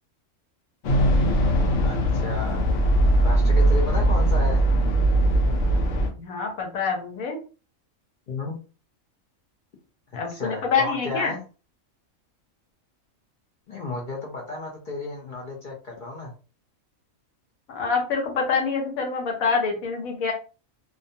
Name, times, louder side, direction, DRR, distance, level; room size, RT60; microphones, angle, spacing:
sound 1, 0.8-6.1, right 1 dB, 70° left, 1.0 m, -20 dB
voice 1, 1.8-2.7 3.2-4.7 8.3-8.6 10.3-11.4 13.7-16.3, left 2 dB, 55° left, 0 dB, 0.5 m, -33 dB
voice 2, 6.2-7.4 10.1-11.4 17.7-20.3, left 5 dB, 90° left, 2 dB, 1.2 m, -26 dB
2.5 x 2.2 x 2.6 m, 0.35 s
omnidirectional pair, 1.4 m